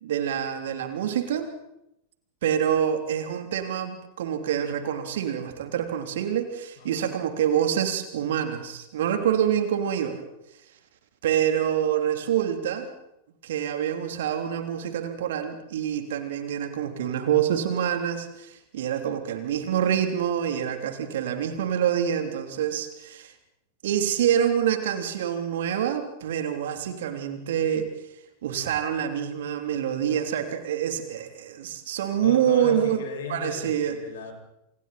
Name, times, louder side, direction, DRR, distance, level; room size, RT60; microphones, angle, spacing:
voice 1, 0.0-1.5 2.4-10.2 11.2-12.9 13.4-23.3 23.8-27.9 28.4-33.0 33.3-34.0, right 9 dB, 60° right, 6 dB, 3.3 m, -26 dB
voice 2, 6.8-7.1 32.2-34.3, left 6 dB, 60° left, 3 dB, 6.1 m, -37 dB
28.5 x 28.0 x 4.3 m, 0.84 s
figure-of-eight pair, 90°, 0 cm